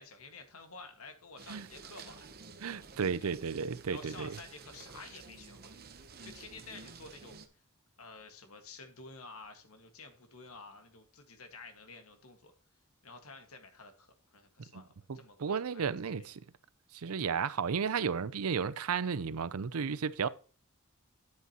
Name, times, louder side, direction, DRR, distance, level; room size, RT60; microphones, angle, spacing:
voice 1, 0.0-2.3 3.2-3.3 3.7-7.6 8.0-12.5 13.0-16.3, left 3 dB, 80° left, 1.7 m, -51 dB
sound 1, 1.4-7.5, right 4 dB, 45° right, 0.9 m, -51 dB
voice 2, 2.6-4.3 14.7-14.8 15.1-16.2 16.9-20.3, right 6 dB, 80° right, 0.6 m, -33 dB
9.7 x 8.3 x 2.9 m
head